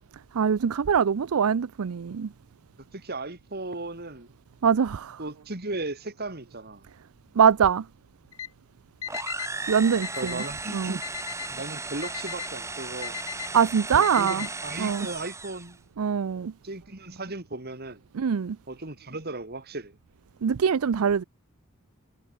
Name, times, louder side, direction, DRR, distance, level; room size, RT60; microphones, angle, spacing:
voice 1, 0.3-2.3 4.6-5.2 7.4-7.9 9.7-10.4 10.7-11.0 13.5-14.5 14.8-15.1 16.0-16.5 18.1-18.6 20.4-21.2, right 7 dB, 75° right, 0.5 m, -23 dB
voice 2, 2.9-4.3 5.2-6.9 10.2-11.0 11.5-13.2 13.9-15.8 16.6-18.0 18.7-20.0, right 2 dB, 45° right, 2.7 m, -36 dB
Alarm, 8.3-8.5 9.0-9.5 10.0-10.5 11.0-11.5 12.0-12.5 13.0-13.5 14.0-14.5, left 9 dB, 70° left, 2.7 m, -36 dB
sound 1, 9.1-15.8, right 3 dB, 15° right, 2.1 m, -36 dB
head